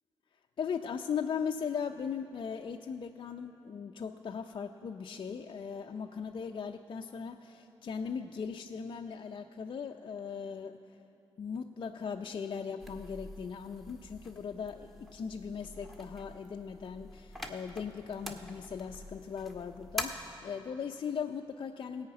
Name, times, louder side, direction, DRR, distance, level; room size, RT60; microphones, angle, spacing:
voice 1, 0.6-11.0 11.4-22.1, left 6 dB, 55° left, 3 dB, 0.5 m, -38 dB
sound 1, 12.8-20.0, left 1 dB, ahead, 1.6 m, -45 dB
16.5 x 5.7 x 8.7 m, 2.8 s
cardioid pair, 60°, 10 cm